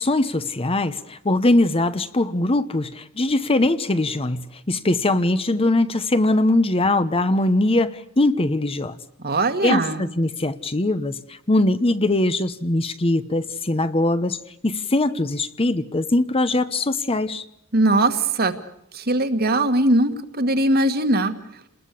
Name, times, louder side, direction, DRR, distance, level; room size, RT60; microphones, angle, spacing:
voice 1, 0.0-9.0 9.6-14.4 14.6-17.4, left 2 dB, 25° left, 12 dB, 0.9 m, -21 dB
voice 2, 9.2-10.0 17.7-18.5 18.9-21.3, right 2 dB, 45° right, 8 dB, 1.8 m, -20 dB
28.5 x 20.5 x 8.4 m, 0.73 s
head